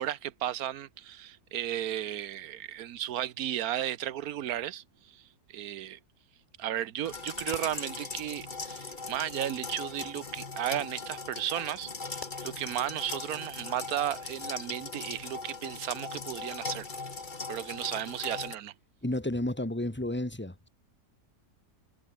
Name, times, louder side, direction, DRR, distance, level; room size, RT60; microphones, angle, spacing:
voice 1, 0.0-6.0 6.6-16.9 17.5-18.7, right 11 dB, 70° right, 1.2 m, -34 dB
sound 1, 7.0-18.5, left 4 dB, 30° left, 1.8 m, -39 dB
voice 2, 19.0-20.7, left 1 dB, 5° left, 2.6 m, -32 dB
omnidirectional pair, 1.7 m